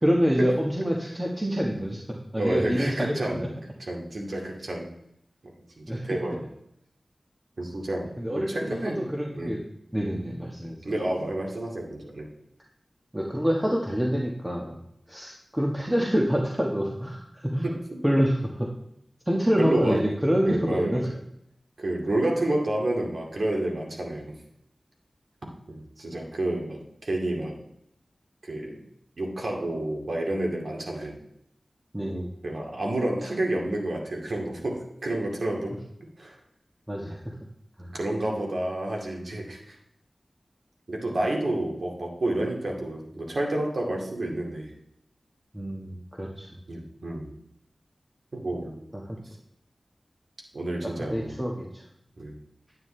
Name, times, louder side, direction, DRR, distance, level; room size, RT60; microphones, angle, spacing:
voice 1, 0.0-2.0 2.3-3.5 5.9-6.0 8.2-9.6 9.9-10.8 13.1-14.8 15.1-17.7 18.0-18.7 19.3-21.0 31.9-32.3 36.9-37.3 37.8-37.9 45.5-46.5 49.1-49.2 51.1-51.8, equal, 15° right, -1 dB, 1.4 m, -26 dB
voice 2, 2.4-3.5 3.8-4.9 5.8-6.5 7.6-9.1 9.4-9.5 10.8-12.3 17.6-17.8 19.6-20.1 20.4-21.0 21.8-24.4 25.7-27.6 28.4-28.8 29.2-31.2 32.4-35.7 36.2-36.4 37.9-39.8 40.9-44.7 46.7-47.3 48.3-48.8 50.5-51.4 52.2-52.3, right 1 dB, 75° right, 0 dB, 2.2 m, -29 dB
9.6 x 9.5 x 3.3 m, 0.77 s
wide cardioid pair, 50°, 0 cm